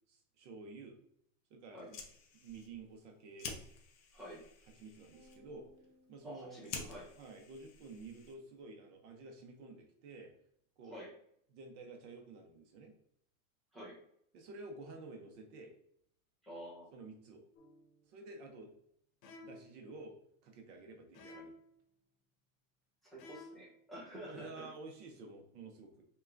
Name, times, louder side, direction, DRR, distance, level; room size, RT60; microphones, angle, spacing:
voice 1, 0.1-1.0 1.5-2.0 2.4-3.5 4.3-4.4 4.8-5.7 6.1-6.7 7.2-10.3 10.8-11.0 11.5-13.0 14.3-15.7 16.9-17.4 18.1-18.7 19.4-20.2 20.4-21.5 24.2-26.1, right 3 dB, 60° right, 3 dB, 0.8 m, -51 dB
Fire, 1.7-8.6, left 5 dB, 30° left, 0.4 m, -50 dB
sound 1, 5.1-7.6, left 1 dB, 85° right, 1.0 m, -66 dB
voice 2, 6.2-7.1 10.8-11.1 13.7-14.0 16.4-16.9 23.0-24.7, equal, ahead, -6 dB, 1.0 m, -49 dB
sound 2, 17.6-17.9 19.2-19.8 21.1-21.8 23.2-23.8, left 2 dB, 85° left, 0.9 m, -53 dB
5.5 x 2.3 x 2.5 m, 0.69 s
supercardioid pair, 160°, 41 cm